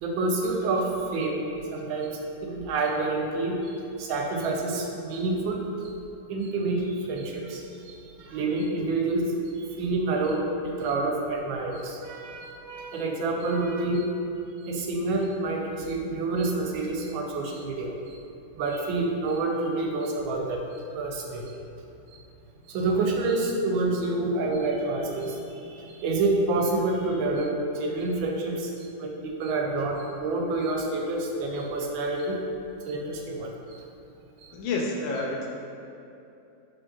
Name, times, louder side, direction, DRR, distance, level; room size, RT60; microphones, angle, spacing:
voice 1, 0.0-1.4 1.7-3.7 4.0-5.6 6.3-9.3 9.7-14.1 14.6-18.2 18.6-20.6 20.9-21.5 22.7-28.7 29.0-32.4 32.8-33.5, right 2 dB, 90° right, 1 dB, 1.4 m, -28 dB
voice 2, 34.5-35.5, left 3 dB, 80° left, -1 dB, 1.4 m, -29 dB
5.1 x 3.7 x 2.3 m, 2.8 s
omnidirectional pair, 2.1 m